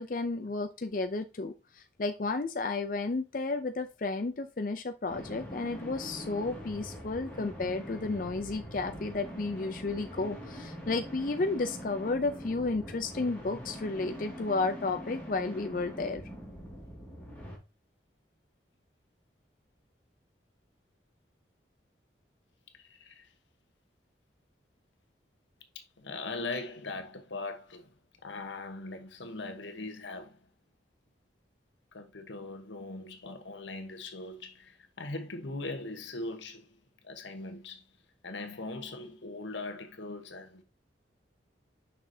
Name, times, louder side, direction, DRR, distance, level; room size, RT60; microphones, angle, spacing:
voice 1, 0.0-16.3, left 3 dB, 45° left, 0.5 m, -32 dB
sound 1, 5.1-17.6, equal, 10° left, 2.1 m, -43 dB
voice 2, 22.7-23.3 25.7-27.9 28.2-30.5 31.9-36.8 37.0-37.8 38.2-40.6, left 2 dB, 85° left, 1.2 m, -40 dB
6.4 x 6.0 x 2.8 m
head